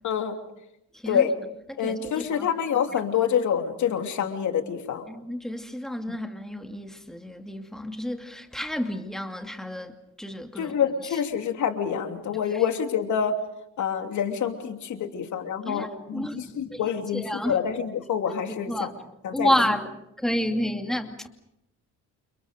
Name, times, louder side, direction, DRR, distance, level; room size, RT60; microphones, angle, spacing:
voice 1, 0.0-0.4 1.1-1.3 1.8-5.1 6.1-6.2 10.6-13.3 13.8-18.9 19.2-19.5, left 8 dB, 70° left, 3.0 m, -27 dB
voice 2, 0.9-1.3 1.7-2.5 5.1-10.8 11.0-11.2 12.3-12.6 15.6-16.8 17.1-17.6 18.5-18.9 19.3-19.9 20.2-21.3, equal, ahead, 2.5 m, -30 dB
29.5 x 29.5 x 5.2 m
cardioid pair, 90°, 30 cm